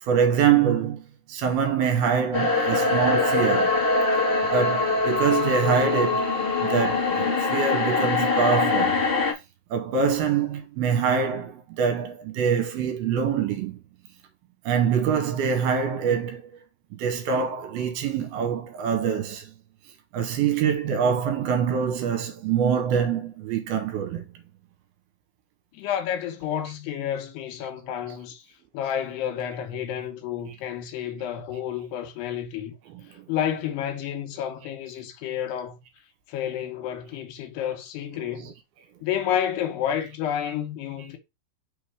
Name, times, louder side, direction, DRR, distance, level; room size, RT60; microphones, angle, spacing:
voice 1, 0.0-3.8 4.5-6.3 6.6-9.0 9.7-13.8 14.6-16.5 16.9-19.5 20.1-24.3 38.4-38.5, right 7 dB, 75° right, 2.6 m, -24 dB
sound 1, 2.3-9.3, left 3 dB, 50° left, 0.6 m, -23 dB
voice 2, 25.7-28.4 28.7-32.7 33.3-35.8 36.3-38.5 39.0-41.2, left 9 dB, 80° left, 3.0 m, -30 dB
5.9 x 3.6 x 4.8 m
omnidirectional pair, 4.9 m